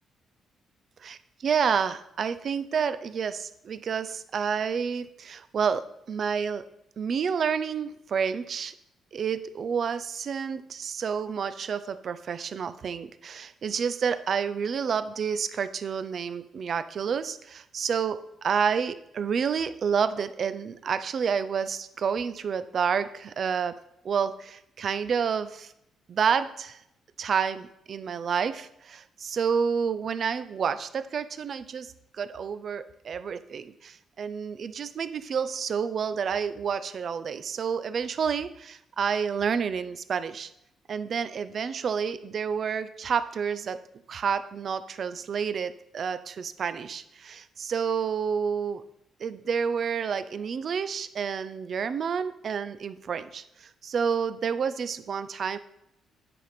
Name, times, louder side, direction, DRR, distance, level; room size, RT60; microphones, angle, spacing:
voice 1, 1.4-6.6 7.0-8.7 9.1-23.7 24.0-25.7 26.1-26.8 27.2-31.9 32.2-40.5 40.9-43.8 44.1-48.8 49.2-55.6, right 6 dB, 55° right, 13 dB, 0.5 m, -29 dB
9.3 x 3.5 x 5.7 m, 0.81 s
cardioid pair, 90°, 0 cm